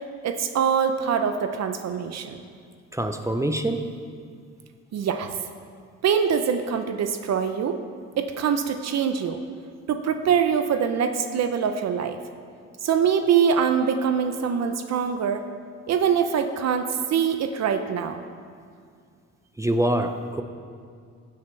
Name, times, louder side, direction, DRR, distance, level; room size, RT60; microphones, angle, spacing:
voice 1, 0.2-2.4 4.9-5.4 6.0-7.8 8.2-9.4 9.9-12.2 12.8-15.4 15.9-18.2, right 7 dB, 60° right, 7 dB, 0.7 m, -24 dB
voice 2, 2.9-3.9 19.6-20.4, right 1 dB, 10° right, 6 dB, 0.5 m, -25 dB
15.5 x 7.7 x 3.2 m, 2.2 s
cardioid pair, 90°, 30 cm